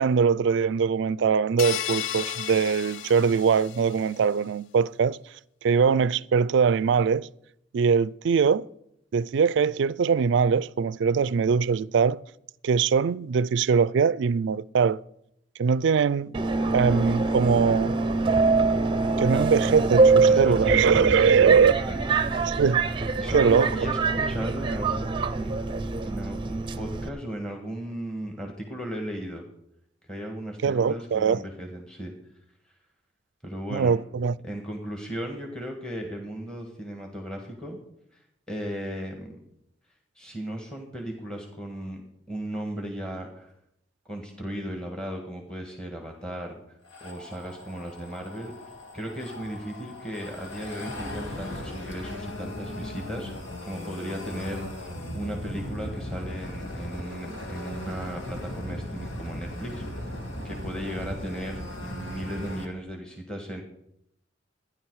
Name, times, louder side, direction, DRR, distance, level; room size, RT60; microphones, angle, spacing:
voice 1, 0.0-5.2 5.6-7.3 7.7-8.7 9.1-12.2 12.6-15.0 15.6-16.4 16.7-18.0 19.0-21.7 22.5-22.8 23.3-23.9 30.6-31.4 33.7-34.3, right 6 dB, 65° right, 0.3 m, -22 dB
sound 1, 1.6-4.1, left 10 dB, 70° left, 0.4 m, -33 dB
Subway metro underground, 16.3-27.1, right 3 dB, 25° right, 0.6 m, -24 dB
voice 2, 20.3-22.5 23.1-25.5 26.0-29.4 30.1-32.1 32.7-32.8 33.4-34.0 34.4-37.8 38.1-39.4 40.2-42.0 42.3-43.5 44.1-60.0 60.4-63.6, equal, 5° left, 1.6 m, -36 dB
sound 2, 46.8-62.7, left 1 dB, 85° left, 2.0 m, -37 dB
14.0 x 10.5 x 4.8 m
head